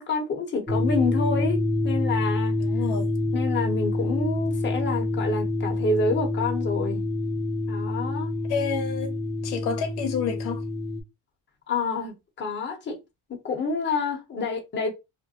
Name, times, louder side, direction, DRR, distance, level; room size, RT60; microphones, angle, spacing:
voice 1, 0.0-2.5 3.3-7.0 7.7-8.3 11.7-13.0 13.4-14.9, left 3 dB, 30° left, 0.9 m, -28 dB
sound 1, 0.7-11.0, left 2 dB, ahead, 0.7 m, -27 dB
voice 2, 2.6-3.1 8.5-9.2 9.4-10.6, left 6 dB, 75° left, 0.7 m, -29 dB
2.5 x 2.2 x 2.7 m
cardioid pair, 115°, 39 cm